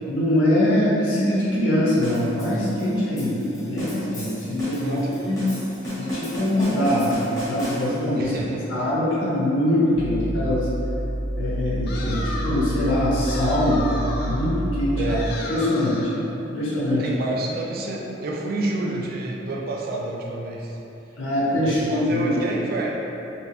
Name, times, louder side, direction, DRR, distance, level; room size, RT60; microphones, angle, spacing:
voice 1, 0.1-5.4 6.0-8.3 8.7-10.7 11.4-15.2 15.5-16.1 16.5-17.1 21.2-22.3, left 1 dB, 85° left, -7 dB, 0.9 m, -23 dB
sound 1, 2.0-8.2, equal, 15° left, 1.0 m, -34 dB
voice 2, 4.8-5.1 8.2-8.9 15.0-15.3 17.0-20.8 21.6-23.0, right 2 dB, 50° right, -1 dB, 0.4 m, -29 dB
sound 2, 9.9-15.3, right 1 dB, 25° right, 0.7 m, -28 dB
sound 3, 11.9-12.7 13.3-14.5 15.1-16.2, left 2 dB, 50° left, 0.4 m, -35 dB
3.0 x 2.8 x 3.1 m, 3.0 s
head